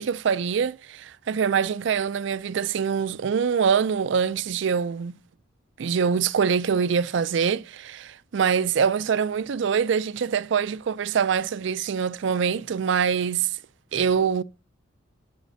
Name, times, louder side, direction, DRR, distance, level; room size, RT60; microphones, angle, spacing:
voice 1, 0.0-5.1 5.8-13.5 13.9-14.4, right 6 dB, 60° right, 0.4 m, -24 dB
12.0 x 7.4 x 2.7 m
head